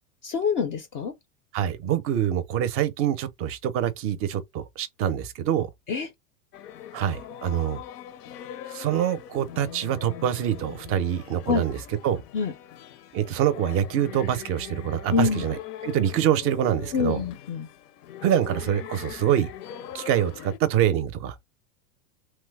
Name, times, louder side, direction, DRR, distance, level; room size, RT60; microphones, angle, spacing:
voice 1, 0.2-1.2 5.9-6.1 11.5-11.6 12.3-12.5 15.1-15.4 16.9-17.7, left 5 dB, 30° left, 0.4 m, -25 dB
voice 2, 1.5-5.7 6.9-7.8 8.7-11.8 12.0-12.2 13.1-15.6 15.8-17.2 18.2-19.5 19.9-21.4, right 10 dB, 30° right, 0.4 m, -25 dB
sound 1, 6.5-20.6, left 11 dB, 85° left, 0.5 m, -41 dB
3.0 x 2.0 x 3.3 m
hypercardioid pair, 110°, 46 cm